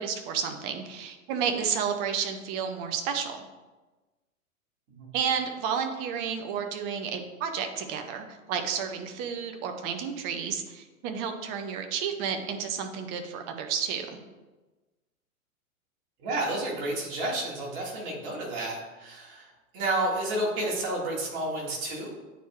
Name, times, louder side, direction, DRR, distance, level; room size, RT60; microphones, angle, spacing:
voice 1, 0.0-3.4 5.1-14.2, right 7 dB, 20° right, 5 dB, 0.5 m, -31 dB
voice 2, 16.2-19.5 19.7-22.1, right 1 dB, 40° right, -3 dB, 2.0 m, -30 dB
9.1 x 4.3 x 2.4 m, 1.2 s
figure-of-eight pair, 100°, 42 cm